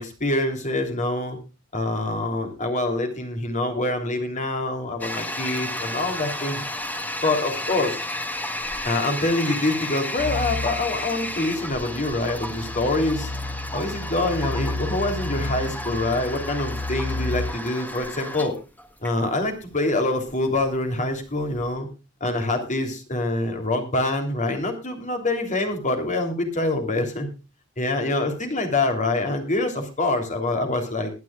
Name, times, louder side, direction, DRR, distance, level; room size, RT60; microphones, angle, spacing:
voice 1, 0.0-1.4 1.7-6.6 7.2-8.0 8.8-13.3 13.7-18.5 19.0-21.9 22.2-27.3 27.8-31.1, left 2 dB, 35° left, 5 dB, 3.3 m, -25 dB
Toilet flush, 5.0-21.7, left 1 dB, 10° left, 1.5 m, -33 dB
sound 1, 10.2-17.5, left 2 dB, 60° left, 1.8 m, -32 dB
21.0 x 10.5 x 2.4 m, 0.30 s
head